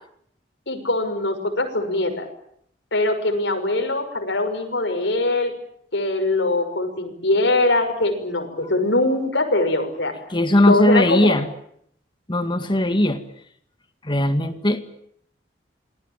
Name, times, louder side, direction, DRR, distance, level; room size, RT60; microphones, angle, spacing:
voice 1, 0.7-2.3 2.9-5.5 5.9-10.1 10.7-11.3, left 2 dB, 70° left, 5 dB, 6.2 m, -22 dB
voice 2, 10.3-11.5 12.3-13.2 14.0-14.8, left 1 dB, 25° left, 9 dB, 2.1 m, -18 dB
27.5 x 21.0 x 9.1 m, 0.69 s
head